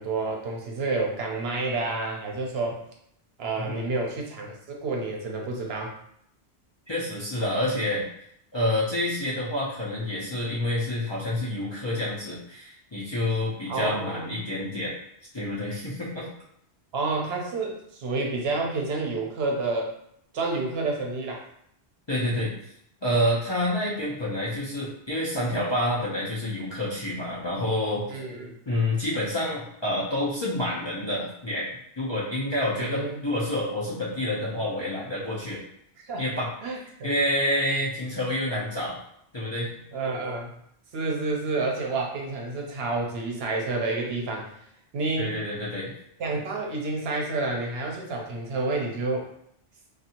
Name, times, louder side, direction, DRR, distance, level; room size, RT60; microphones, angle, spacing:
voice 1, 0.0-2.8 3.4-5.9 13.7-14.3 16.9-19.9 20.3-21.4 28.1-28.5 32.7-33.2 36.0-36.2 36.6-37.1 39.9-40.6 40.9-44.5 44.9-45.3 46.2-49.3, right 3 dB, 70° right, 0 dB, 0.8 m, -29 dB
voice 2, 6.9-8.0 8.5-14.9 15.3-16.3 22.1-22.7 23.0-28.1 28.7-31.7 32.0-35.6 36.2-36.5 37.0-39.0 39.3-39.7 45.2-45.9, left 1 dB, 35° left, -7 dB, 0.5 m, -28 dB
2.6 x 2.4 x 2.8 m, 0.71 s
omnidirectional pair, 1.1 m